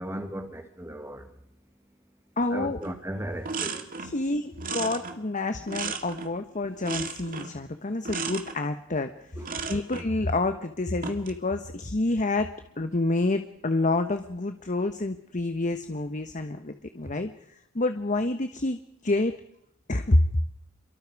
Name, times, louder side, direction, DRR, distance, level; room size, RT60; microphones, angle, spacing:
voice 1, 0.0-1.3 2.5-3.9 9.4-9.5 17.0-17.1, right 1 dB, 15° right, 1.9 m, -36 dB
voice 2, 2.4-2.8 4.0-9.1 9.7-12.5 12.8-19.4 19.9-20.3, left 2 dB, 40° left, 1.2 m, -28 dB
sound 1, 2.8-3.0 3.2-4.2 4.6-6.4 6.8-7.6 8.0-8.6 9.4-10.1 10.9-11.4, right 5 dB, 45° right, 2.1 m, -35 dB
27.5 x 23.5 x 4.8 m
head